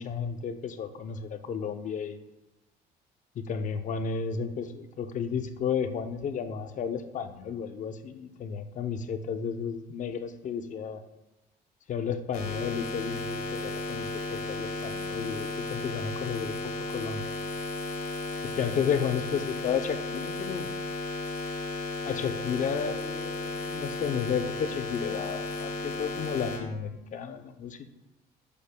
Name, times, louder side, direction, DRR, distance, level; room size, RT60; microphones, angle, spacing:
voice 1, 0.0-2.2 3.4-11.0 11.9-17.3 18.4-20.7 22.0-27.9, left 6 dB, 50° left, 9 dB, 0.6 m, -33 dB
sound 1, 12.3-26.6, left 2 dB, 70° left, 1.8 m, -34 dB
9.9 x 6.8 x 2.2 m, 0.99 s
cardioid pair, 110°, 17 cm